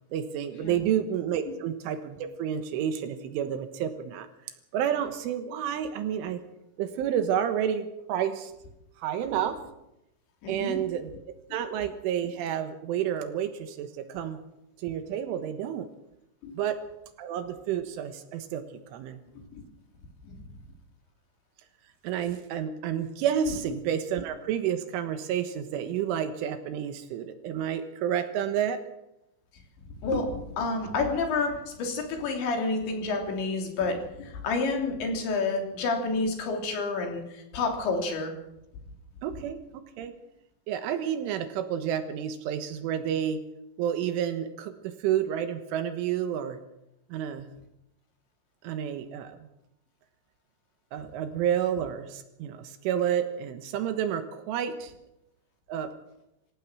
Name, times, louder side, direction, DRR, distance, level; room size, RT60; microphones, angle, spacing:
voice 1, 0.1-4.3 4.7-6.4 6.8-8.5 9.0-9.6 10.5-11.1 11.5-14.4 14.8-15.9 16.6-16.8 17.2-18.7 18.9-19.2 22.0-28.8 39.2-39.6 40.0-40.1 40.7-43.4 43.8-46.6 47.1-47.5 48.6-49.4 50.9-54.9 55.7-55.9, right 9 dB, 75° right, 8 dB, 3.7 m, -30 dB
voice 2, 10.4-10.8 11.5-11.6 16.4-16.6 19.4-19.6 20.2-20.4 23.5-23.6 30.0-38.3, left 3 dB, 65° left, 3 dB, 5.3 m, -29 dB
27.0 x 15.5 x 6.2 m, 0.87 s
omnidirectional pair, 5.8 m